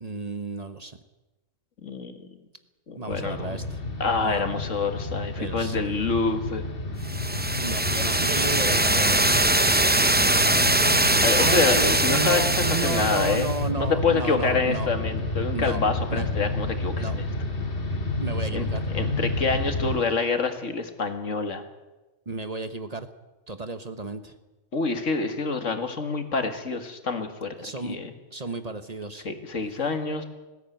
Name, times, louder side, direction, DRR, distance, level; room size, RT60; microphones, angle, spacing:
voice 1, 0.0-1.0 2.9-3.8 4.2-4.4 5.4-5.9 7.6-9.4 11.4-14.9 15.5-15.8 16.1-16.3 17.0-17.2 18.2-18.9 22.3-23.1 23.5-24.3 27.6-28.0 28.3-29.3, right 3 dB, 35° right, 10 dB, 1.1 m, -32 dB
voice 2, 1.8-2.3 2.9-3.7 4.0-6.6 11.2-12.5 12.8-13.5 13.8-17.2 18.5-18.7 18.9-21.6 24.7-27.5 27.8-28.1 29.2-30.2, left 4 dB, 80° left, 7 dB, 2.2 m, -27 dB
sound 1, 3.1-20.0, left 2 dB, 50° left, 1.8 m, -30 dB
sound 2, 7.1-13.6, right 1 dB, 10° right, 0.6 m, -22 dB
19.5 x 16.5 x 9.1 m, 1.1 s
omnidirectional pair, 1.3 m